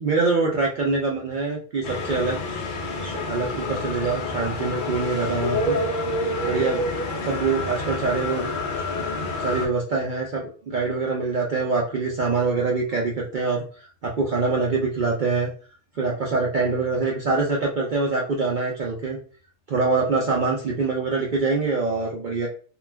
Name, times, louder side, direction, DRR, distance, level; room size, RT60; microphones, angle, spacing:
voice 1, 0.0-2.4 3.0-5.8 6.4-6.8 7.2-8.5 9.4-15.5 15.9-19.2 19.7-22.5, right 4 dB, 65° right, -2 dB, 0.4 m, -24 dB
sound 1, 1.8-9.7, left 2 dB, 60° left, 0.5 m, -28 dB
2.3 x 2.3 x 3.2 m, 0.40 s
omnidirectional pair, 1.4 m